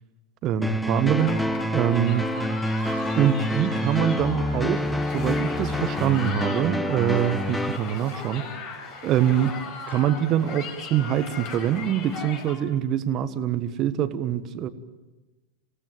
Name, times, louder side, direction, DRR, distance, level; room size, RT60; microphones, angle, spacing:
voice 1, 0.4-1.4 1.7-2.3 3.1-4.8 5.1-8.4 9.0-9.5 9.9-14.7, right 10 dB, 35° right, 12 dB, 1.4 m, -24 dB
A Minor Dance Piano, 0.6-7.8, left 1 dB, 5° left, 1.0 m, -27 dB
sound 1, 1.2-12.6, left 4 dB, 40° left, 5.0 m, -38 dB
sound 2, 2.1-11.1, left 1 dB, 80° left, 5.8 m, -49 dB
27.0 x 17.5 x 7.6 m, 1.2 s
figure-of-eight pair, 90°, 0 cm